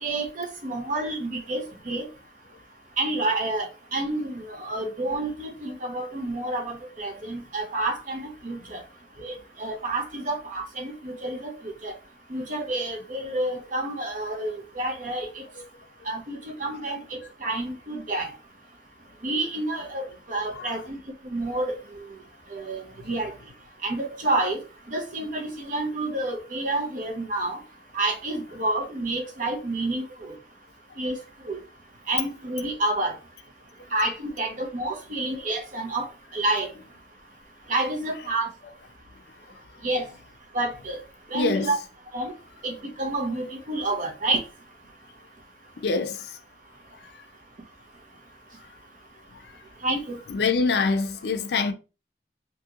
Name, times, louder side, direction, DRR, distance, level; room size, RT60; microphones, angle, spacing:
voice 1, 0.0-2.1 3.0-8.8 9.2-11.9 12.3-15.5 16.1-18.3 19.2-21.0 21.2-21.8 22.5-23.3 23.8-24.6 24.9-27.6 27.9-30.3 31.0-31.2 31.4-31.6 32.1-33.2 33.9-36.1 36.3-36.7 37.7-38.5 39.8-40.1 40.5-41.0 41.3-41.8 42.1-42.3 42.6-44.4 49.8-50.2, right 2 dB, 45° right, 0.6 m, -29 dB
voice 2, 20.5-20.8 41.3-41.7 45.8-46.4 47.1-47.2 49.3-49.5 50.3-51.7, left 4 dB, 65° left, 0.4 m, -26 dB
2.9 x 2.6 x 2.4 m
head